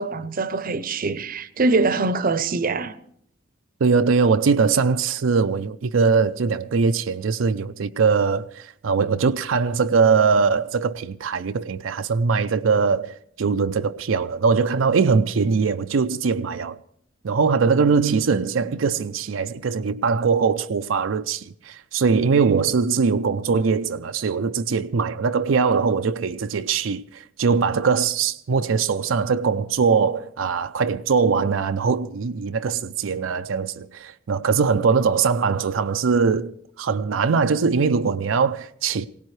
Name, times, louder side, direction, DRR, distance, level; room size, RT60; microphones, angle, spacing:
voice 1, 0.0-2.9, right 3 dB, 45° right, 0.7 m, -23 dB
voice 2, 3.8-16.8 17.2-39.1, right 5 dB, 90° right, 0.5 m, -21 dB
21.0 x 17.5 x 3.2 m
head